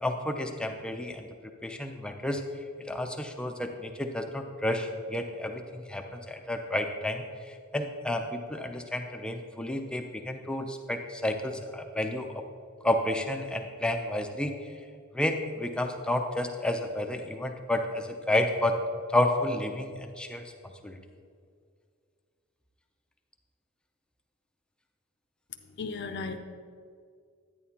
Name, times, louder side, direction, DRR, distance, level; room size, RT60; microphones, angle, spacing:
voice 1, 0.0-1.3 1.6-2.4 2.9-12.3 12.8-14.5 15.1-18.8 19.1-21.0, left 1 dB, 5° left, 4 dB, 0.5 m, -31 dB
voice 2, 25.8-26.4, left 4 dB, 55° left, 4 dB, 0.5 m, -35 dB
11.0 x 9.2 x 2.8 m, 2.1 s
head